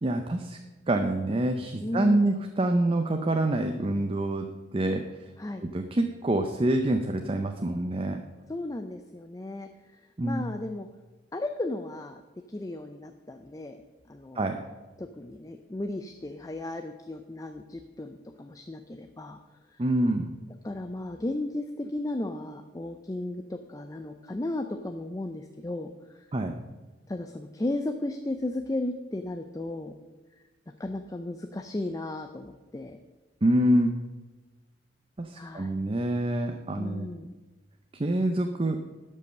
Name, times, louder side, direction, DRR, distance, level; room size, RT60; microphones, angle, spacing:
voice 1, 0.0-0.6 0.9-4.5 4.7-5.0 5.6-8.2 10.2-10.4 14.4-14.6 19.8-20.3 26.3-26.5 33.4-33.9 35.2-37.1 38.0-38.8, right 1 dB, 30° right, 5 dB, 0.6 m, -26 dB
voice 2, 1.8-2.3 5.4-5.6 8.5-9.7 10.2-10.9 11.3-12.2 12.5-13.8 14.1-14.5 15.0-19.4 19.7-19.8 20.6-26.3 27.1-29.9 30.7-33.0 35.4-35.7 36.8-37.3, left 1 dB, 20° left, 7 dB, 0.4 m, -35 dB
12.0 x 5.5 x 6.4 m, 1.2 s
head